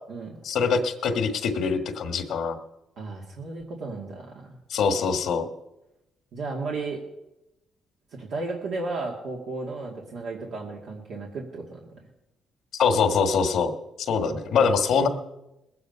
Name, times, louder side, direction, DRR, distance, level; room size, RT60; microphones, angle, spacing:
voice 1, 0.4-2.6 4.7-5.5 12.7-13.7 14.0-15.1, left 5 dB, 75° left, 5 dB, 1.4 m, -23 dB
voice 2, 3.0-4.6 6.3-7.0 8.1-11.8 14.2-15.0, right 3 dB, 70° right, -2 dB, 2.3 m, -34 dB
20.0 x 8.4 x 5.5 m, 0.91 s
cardioid pair, 90°, 0 cm